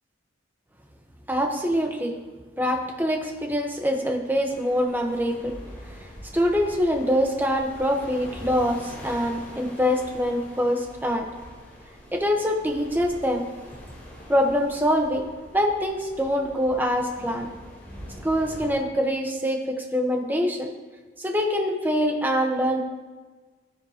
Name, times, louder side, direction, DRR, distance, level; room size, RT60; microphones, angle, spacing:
voice 1, 1.3-2.2 2.6-5.6 6.0-11.3 12.1-13.4 14.3-15.3 15.5-17.5 18.2-20.7 21.2-22.8, equal, 10° right, 2 dB, 1.0 m, -24 dB
sound 1, 4.5-18.7, equal, 10° left, 3.4 m, -44 dB
14.5 x 12.0 x 2.9 m, 1.4 s
head